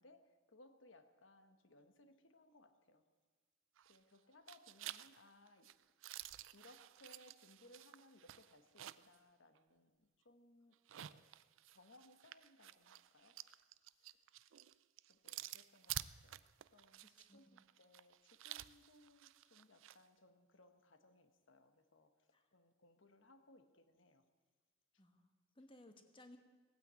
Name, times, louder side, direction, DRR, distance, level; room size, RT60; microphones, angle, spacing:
voice 1, 0.0-3.0 3.9-5.7 6.5-11.3 11.7-13.4 14.0-14.2 15.1-16.4 16.7-24.3 24.9-25.0, left 2 dB, 65° left, 9 dB, 1.2 m, -66 dB
sound 1, 3.8-4.2 4.5-9.2 9.6-9.7 10.7-20.0, right 13 dB, 65° right, 0.4 m, -51 dB
voice 2, 17.0-17.6 22.3-22.5 25.0-26.4, left 1 dB, 25° left, 6 dB, 1.3 m, -62 dB
17.5 x 9.4 x 8.2 m, 1.4 s
head